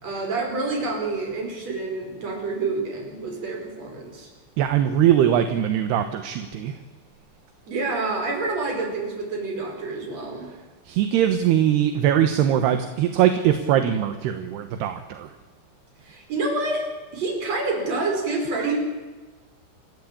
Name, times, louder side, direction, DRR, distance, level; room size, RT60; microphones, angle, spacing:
voice 1, 0.0-4.3 7.7-10.5 16.0-18.8, right 3 dB, 35° right, 1 dB, 6.1 m, -28 dB
voice 2, 4.6-6.7 10.9-15.3 18.5-18.8, right 10 dB, 70° right, 8 dB, 2.9 m, -21 dB
28.5 x 14.5 x 8.7 m, 1.3 s
omnidirectional pair, 5.5 m